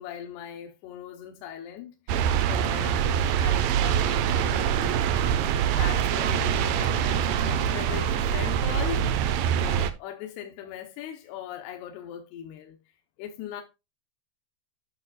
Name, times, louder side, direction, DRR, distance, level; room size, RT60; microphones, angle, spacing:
voice 1, 0.0-5.3 5.7-12.8 13.2-13.6, left 9 dB, 85° left, 2.9 m, -40 dB
sound 1, 2.1-9.9, right 9 dB, 85° right, 2.0 m, -24 dB
sound 2, 3.4-9.4, right 2 dB, 65° right, 0.8 m, -43 dB
11.0 x 6.2 x 2.4 m
omnidirectional pair, 4.6 m